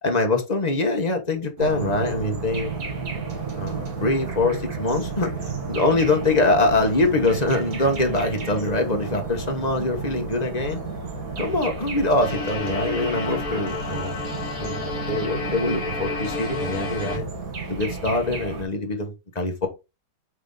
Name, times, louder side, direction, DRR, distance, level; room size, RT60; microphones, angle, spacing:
voice 1, 0.0-2.7 3.5-10.8 11.4-14.2 14.6-17.2 17.7-19.7, left 2 dB, 30° left, 0.8 m, -24 dB
sound 1, 1.6-18.6, right 4 dB, 50° right, 2.0 m, -32 dB
sound 2, 12.2-17.2, left 3 dB, 45° left, 2.0 m, -31 dB
8.1 x 3.6 x 3.9 m
omnidirectional pair, 2.3 m